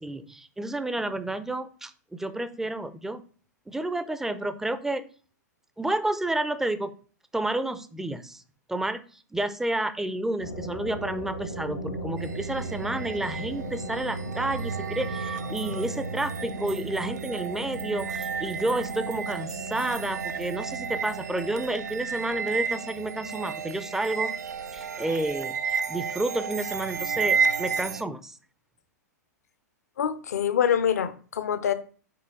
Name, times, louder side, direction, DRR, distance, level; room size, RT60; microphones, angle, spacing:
voice 1, 0.0-3.2 3.7-5.1 5.8-6.9 7.3-8.4 8.7-9.0 9.3-24.4 24.7-28.4, right 1 dB, 5° right, 0.4 m, -30 dB
sound 1, 10.4-26.7, right 2 dB, 85° left, 1.4 m, -37 dB
sound 2, 12.2-28.0, right 6 dB, 70° right, 0.4 m, -32 dB
voice 2, 30.0-31.7, left 9 dB, 65° left, 0.6 m, -25 dB
5.7 x 4.6 x 3.7 m
figure-of-eight pair, 105°, 9 cm